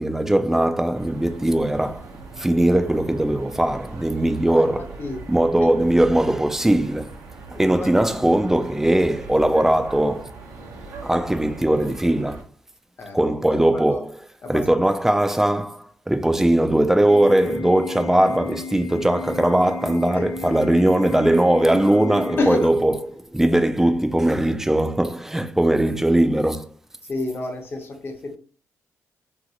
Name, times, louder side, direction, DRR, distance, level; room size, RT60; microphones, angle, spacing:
voice 1, 0.0-2.0 2.4-4.9 5.3-7.2 7.5-10.3 11.0-12.4 13.1-14.1 14.5-26.7, right 1 dB, 5° right, 0.3 m, -20 dB
sound 1, 0.9-12.4, right 3 dB, 80° right, 0.7 m, -40 dB
voice 2, 7.5-7.9 13.0-14.0 14.4-14.6 20.1-20.2 22.4-22.7 27.1-28.4, left 2 dB, 40° left, 0.7 m, -29 dB
Organ, 17.1-23.1, left 6 dB, 65° left, 0.4 m, -35 dB
3.0 x 2.5 x 2.8 m
cardioid pair, 90°, 6 cm